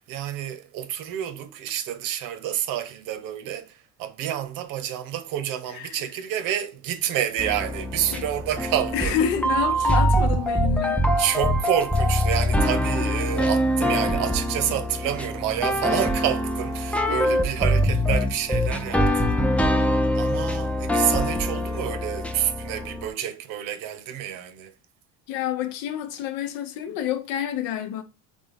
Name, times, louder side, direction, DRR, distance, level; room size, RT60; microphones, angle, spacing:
voice 1, 0.1-9.2 9.8-9.9 11.2-19.4 20.1-24.7, right 11 dB, 70° right, 0.8 m, -29 dB
sound 1, 7.4-23.1, equal, 5° left, 0.3 m, -24 dB
voice 2, 8.9-11.1 17.1-17.5 25.3-28.0, left 9 dB, 90° left, 0.8 m, -28 dB
4.2 x 3.3 x 3.5 m
cardioid pair, 130°, 34 cm